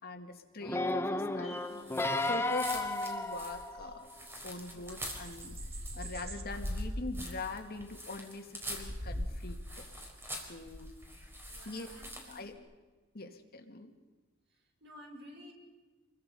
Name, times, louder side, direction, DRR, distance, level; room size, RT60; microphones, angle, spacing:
voice 1, 0.0-4.1 4.4-5.5 5.9-9.8 10.4-10.9 11.6-11.9 12.3-12.5 13.1-13.9, left 2 dB, 50° left, 4 dB, 2.3 m, -43 dB
sound 1, 0.6-4.1 4.8-4.9, left 2 dB, 10° left, 0.8 m, -33 dB
sound 2, 1.4-3.9 4.3-4.4 4.6-6.4, right 4 dB, 30° right, 2.2 m, -52 dB
sound 3, 1.8-12.5, equal, 10° right, 4.4 m, -42 dB
voice 2, 11.5-12.5 14.5-15.5, equal, 60° right, 1 dB, 6.0 m, -53 dB
28.5 x 22.5 x 5.5 m, 1.3 s
head